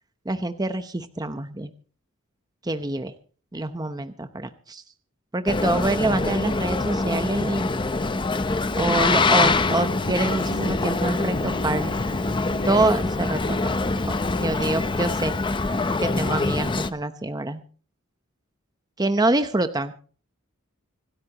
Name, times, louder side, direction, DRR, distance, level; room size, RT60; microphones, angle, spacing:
voice 1, 0.3-1.7 2.6-3.1 3.5-4.8 5.3-7.7 8.8-11.9 12.7-13.6 14.1-15.3 15.9-17.6 19.0-19.9, right 2 dB, 20° right, 9 dB, 0.8 m, -26 dB
Boat Water vehicle, 5.5-16.9, left 3 dB, 25° left, 0.6 m, -24 dB
sound 1, 8.5-15.2 16.1-16.6, left 1 dB, 60° left, 5.4 m, -39 dB
26.0 x 13.0 x 3.0 m, 0.40 s
head